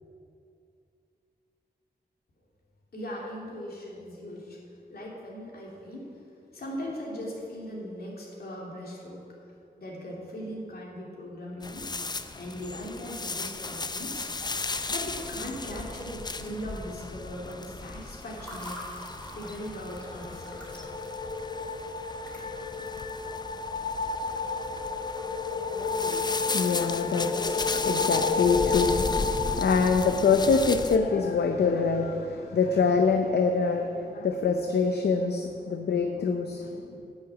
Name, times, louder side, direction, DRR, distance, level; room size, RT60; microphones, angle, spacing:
voice 1, 2.9-4.6 4.9-6.1 6.5-11.9 12.4-14.3 14.9-18.8 19.3-20.6, equal, 65° left, -4 dB, 2.8 m, -39 dB
sound 1, 11.6-31.0, left 3 dB, 25° left, 0.5 m, -36 dB
Water / Fill (with liquid), 17.8-22.9, equal, 5° left, 2.9 m, -46 dB
sound 2, 19.7-31.0, left 4 dB, 45° left, 1.1 m, -31 dB
voice 2, 25.7-36.9, left 5 dB, 85° left, 5 dB, 0.6 m, -25 dB
9.7 x 6.4 x 8.2 m, 2.5 s
wide cardioid pair, 105°, 17 cm